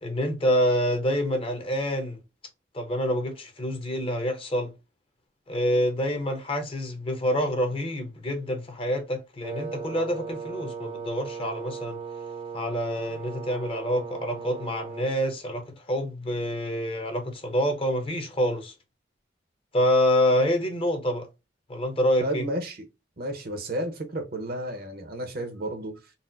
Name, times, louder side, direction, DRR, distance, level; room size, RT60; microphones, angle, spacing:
voice 1, 0.0-2.2 2.7-4.7 5.5-12.0 12.5-18.7 19.7-21.3 21.7-22.4, equal, 30° left, 0.7 m, -27 dB
Wind instrument woodwind instrument, 9.4-15.2, right 5 dB, 30° right, 0.4 m, -37 dB
voice 2, 22.2-22.9 23.2-26.1, right 1 dB, 55° right, 0.7 m, -32 dB
4.0 x 2.0 x 2.5 m
head